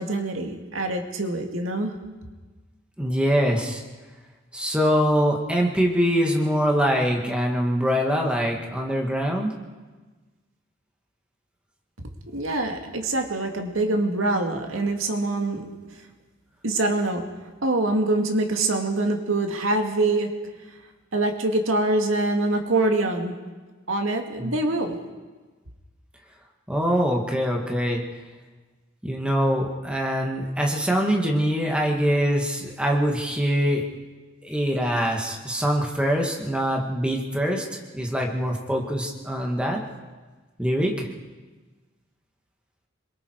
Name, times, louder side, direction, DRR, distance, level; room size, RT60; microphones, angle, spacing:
voice 1, 0.0-1.9 12.3-15.7 16.6-17.2 17.6-20.3 21.1-23.3 23.9-25.0, right 2 dB, 80° right, 4 dB, 2.2 m, -24 dB
voice 2, 3.0-3.8 4.5-9.5 24.4-24.6 26.7-28.0 29.0-33.8 34.4-39.8 40.6-41.1, equal, 5° right, 0 dB, 2.1 m, -23 dB
26.0 x 22.5 x 4.8 m, 1.3 s
head